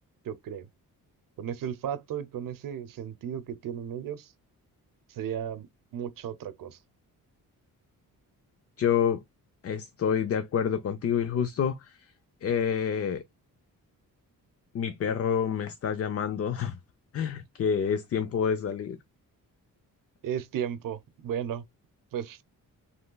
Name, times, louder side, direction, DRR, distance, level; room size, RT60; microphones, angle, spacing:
voice 1, 0.2-0.7 1.4-4.3 5.1-5.7 5.9-6.8 20.2-21.6 22.1-22.4, right 9 dB, 70° right, 0.7 m, -34 dB
voice 2, 8.8-9.2 9.6-12.1 12.4-13.2 14.7-16.8 17.1-19.0, left 7 dB, 45° left, 0.5 m, -28 dB
5.3 x 3.3 x 2.2 m
cardioid pair, 115°, 34 cm